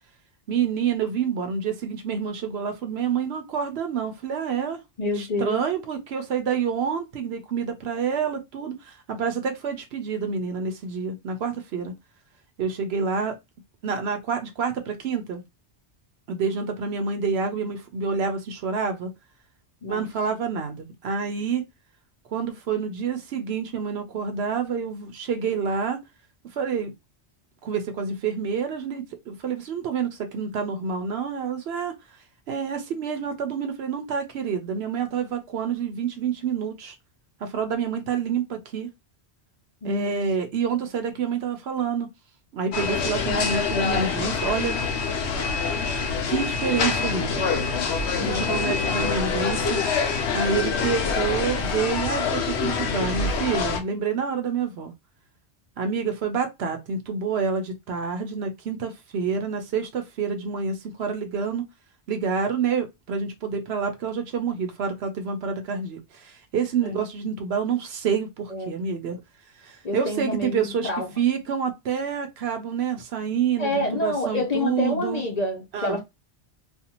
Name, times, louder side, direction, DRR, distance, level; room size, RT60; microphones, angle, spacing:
voice 1, 0.5-4.8 5.1-11.9 12.6-13.3 13.8-15.4 16.3-19.1 19.9-21.7 22.3-26.0 26.6-26.9 27.6-32.0 32.5-37.0 37.4-38.9 39.8-42.1 42.5-44.8 46.3-47.5 48.2-49.8 50.3-54.9 55.8-61.6 62.1-69.2 69.6-70.9 71.2-75.2 75.7-76.0, right 6 dB, 70° right, 0.8 m, -28 dB
voice 2, 5.0-5.6 19.8-20.0 39.8-40.2 48.1-49.1 66.8-67.0 68.5-68.7 69.8-71.1 73.6-76.0, left 2 dB, 40° left, 0.7 m, -28 dB
sound 1, 42.7-53.8, left 5 dB, 75° left, 0.9 m, -25 dB
2.6 x 2.3 x 2.8 m
omnidirectional pair, 1.2 m